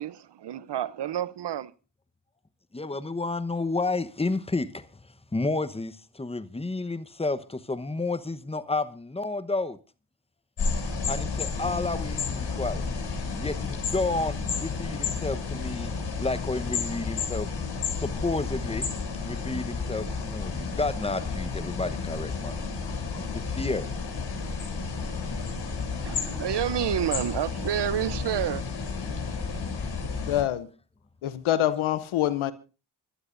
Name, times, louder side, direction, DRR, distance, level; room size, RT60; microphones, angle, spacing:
voice 1, 0.0-1.7 26.0-28.6, right 10 dB, 60° right, 0.8 m, -29 dB
voice 2, 2.7-4.9 5.3-9.8 11.1-12.8 13.4-15.9 16.2-17.5 18.0-18.8 19.2-22.6 23.2-23.9, left 3 dB, 10° left, 1.0 m, -31 dB
sound 1, 10.6-30.4, left 4 dB, 60° left, 6.3 m, -31 dB
voice 3, 30.2-30.7 31.2-32.5, left 12 dB, 85° left, 0.9 m, -25 dB
27.5 x 12.5 x 2.6 m
cardioid pair, 55°, 47 cm